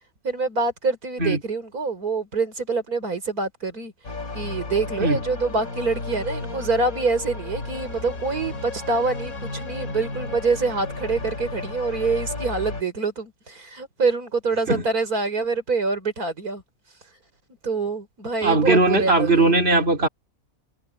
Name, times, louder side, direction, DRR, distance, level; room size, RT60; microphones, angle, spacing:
voice 1, 0.2-3.9 4.3-16.6 17.6-19.5, right 4 dB, 90° right, 5.3 m, -25 dB
sound 1, 4.0-12.8, left 3 dB, 70° left, 3.7 m, -33 dB
voice 2, 18.4-20.1, right 3 dB, 45° right, 3.1 m, -19 dB
omnidirectional pair, 1.5 m